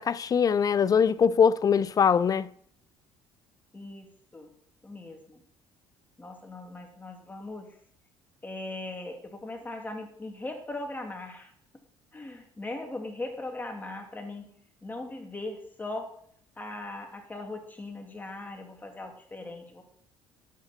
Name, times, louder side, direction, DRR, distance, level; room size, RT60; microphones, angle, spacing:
voice 1, 0.0-2.5, left 7 dB, 35° left, 0.4 m, -22 dB
voice 2, 3.7-4.5 4.8-5.4 6.2-7.8 8.4-11.5 12.1-16.1 16.6-19.8, left 2 dB, 15° left, 2.6 m, -39 dB
11.5 x 8.2 x 4.3 m
supercardioid pair, 85°, 10 cm